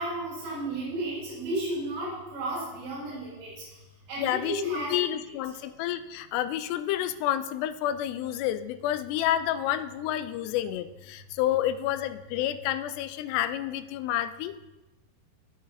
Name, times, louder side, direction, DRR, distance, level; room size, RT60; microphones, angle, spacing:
voice 1, 0.0-3.5 4.1-4.9, right 2 dB, 75° right, -8 dB, 6.9 m, -33 dB
voice 2, 4.2-14.7, left 12 dB, 80° left, 12 dB, 2.6 m, -29 dB
19.0 x 6.4 x 4.2 m, 1.0 s
omnidirectional pair, 5.0 m